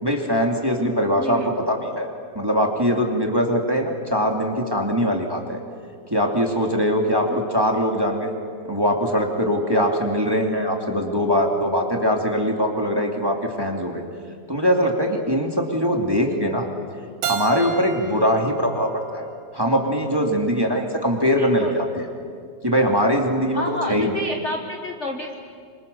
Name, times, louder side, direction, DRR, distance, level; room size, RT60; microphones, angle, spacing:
voice 1, 0.0-5.6 6.1-8.3 8.6-14.0 14.5-16.7 17.3-19.2 19.5-22.1 22.6-24.2, equal, 10° right, 2 dB, 2.1 m, -22 dB
voice 2, 1.2-1.5 7.3-7.4 21.3-21.8 23.5-25.4, left 1 dB, 35° left, 4 dB, 1.2 m, -30 dB
Keyboard (musical), 17.2-20.1, right 7 dB, 80° right, 2.7 m, -32 dB
27.0 x 26.5 x 7.0 m, 2.2 s
omnidirectional pair, 3.3 m